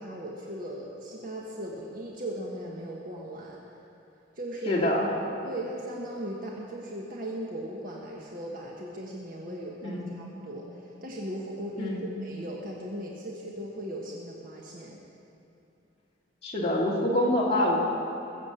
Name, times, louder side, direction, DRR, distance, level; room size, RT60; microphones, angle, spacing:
voice 1, 0.0-3.6 4.3-4.8 5.4-15.0, right 1 dB, 45° right, -3 dB, 1.4 m, -38 dB
voice 2, 4.7-5.1 9.8-10.1 11.8-12.1 16.4-17.8, left 1 dB, 30° left, -4 dB, 2.5 m, -26 dB
20.5 x 7.5 x 7.7 m, 2.8 s
head